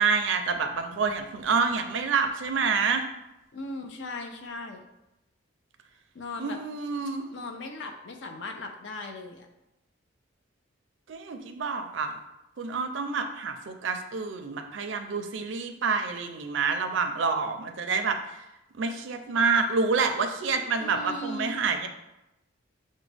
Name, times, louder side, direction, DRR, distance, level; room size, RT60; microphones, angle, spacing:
voice 1, 0.0-3.0 6.4-7.3 11.1-12.1 12.6-18.4 18.8-21.9, right 5 dB, 60° right, 6 dB, 0.4 m, -27 dB
voice 2, 3.5-4.8 6.1-6.6 7.3-9.5 20.8-21.6, left 2 dB, 60° left, 4 dB, 0.5 m, -38 dB
6.0 x 2.1 x 3.3 m, 0.91 s
head